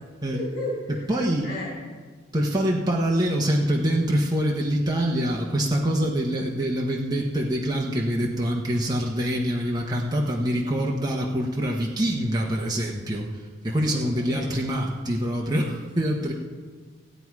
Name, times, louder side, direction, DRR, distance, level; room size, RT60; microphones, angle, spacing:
voice 1, 0.3-1.1 1.4-1.7 13.9-14.6, left 1 dB, 60° left, -5 dB, 3.6 m, -34 dB
voice 2, 1.1-1.5 2.3-13.3 13.6-16.3, equal, 20° right, -2 dB, 1.1 m, -25 dB
17.5 x 8.9 x 4.7 m, 1.5 s
head